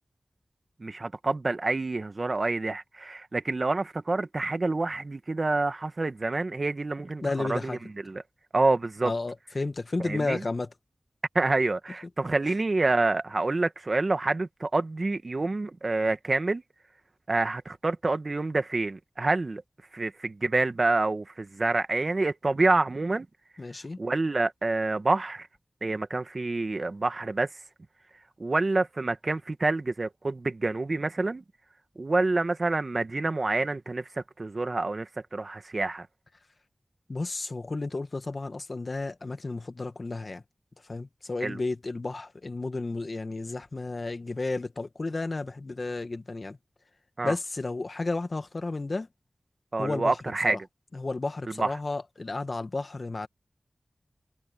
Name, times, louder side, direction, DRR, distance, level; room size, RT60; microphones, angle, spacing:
voice 1, 0.8-8.2 8.5-9.1 10.0-10.4 11.3-16.6 17.3-19.6 19.9-23.3 24.0-25.5 25.8-27.5 28.4-31.4 31.9-36.1 41.4-41.6 47.2-47.3 49.7-50.6 51.6-51.7, right 3 dB, 55° right, 1.5 m, -27 dB
voice 2, 7.2-7.8 9.0-10.7 12.4-12.6 23.6-24.0 37.1-40.4 40.9-46.6 47.2-49.1 49.8-50.2 50.4-50.6 50.9-53.3, left 3 dB, 55° left, 1.7 m, -32 dB
wide cardioid pair, 55°, 0 cm